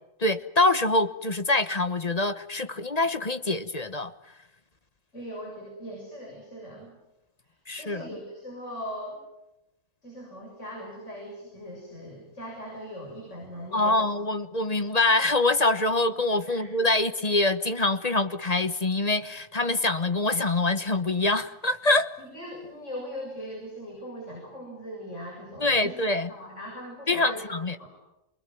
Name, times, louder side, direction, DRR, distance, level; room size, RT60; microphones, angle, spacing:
voice 1, 0.2-4.1 7.7-8.1 13.7-22.1 25.6-26.3 27.1-27.7, left 2 dB, 30° left, 10 dB, 1.1 m, -25 dB
voice 2, 5.1-6.9 7.4-9.2 10.0-14.0 16.5-16.7 22.2-26.0 26.3-27.4 27.8-27.9, equal, 60° left, -1 dB, 8.2 m, -40 dB
28.0 x 21.5 x 9.3 m, 0.91 s
omnidirectional pair, 1.4 m